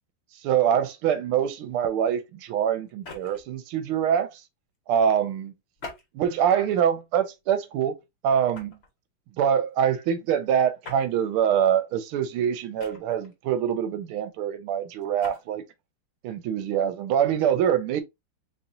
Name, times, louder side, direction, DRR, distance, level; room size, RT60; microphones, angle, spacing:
voice 1, 0.4-4.4 4.9-5.5 6.1-8.0 8.2-8.8 9.4-15.6 16.2-18.0, right 9 dB, 80° right, 1.6 m, -24 dB
sound 1, 2.9-3.5 5.8-6.5 7.2-7.4 8.5-8.9 10.8-11.1 12.8-13.3 15.0-15.4, left 3 dB, 40° left, 1.1 m, -43 dB
4.2 x 3.5 x 2.5 m
omnidirectional pair, 2.3 m